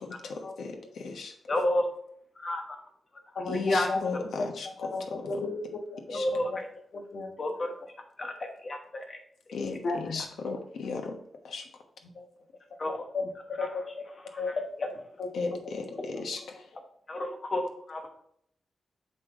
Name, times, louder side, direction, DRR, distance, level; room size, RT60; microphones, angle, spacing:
voice 1, 0.0-1.3 3.5-4.7 5.1-5.2 6.1-6.3 9.5-9.8 10.1-11.2 11.4-11.7 15.3-16.4, left 4 dB, 90° left, 4 dB, 1.1 m, -36 dB
voice 2, 1.5-1.8 2.4-2.8 3.5-3.9 6.1-6.6 7.4-7.7 8.2-8.3 8.6-9.2 12.8-12.9 13.6-13.7 14.3-14.4 14.8-14.9 17.1-18.1, left 1 dB, 35° left, 3 dB, 1.1 m, -30 dB
voice 3, 3.3-4.5 4.8-6.6 6.9-7.5 9.8-10.2 12.0-12.2 12.9-13.3 13.6-13.8 14.4-14.5 15.2-15.8, left 3 dB, 60° left, 3 dB, 1.2 m, -35 dB
6.7 x 5.2 x 3.6 m, 0.70 s
wide cardioid pair, 125°, 0 cm